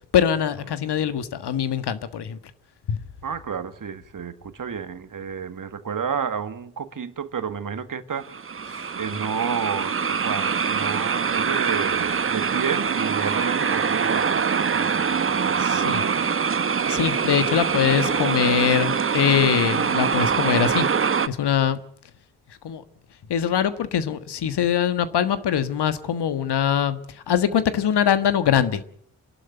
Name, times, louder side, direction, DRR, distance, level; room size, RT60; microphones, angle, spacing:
voice 1, 0.1-2.4 2.9-3.0 15.6-16.0 16.9-20.9 21.3-21.8 22.6-22.8 23.3-27.0 27.3-28.8, left 9 dB, 60° left, 1.6 m, -22 dB
voice 2, 3.2-8.3 8.9-16.3 17.7-17.8, right 6 dB, 45° right, 1.7 m, -31 dB
sound 1, 8.2-21.3, right 6 dB, 30° right, 0.9 m, -24 dB
28.0 x 12.0 x 7.9 m
hypercardioid pair, 45°, 45 cm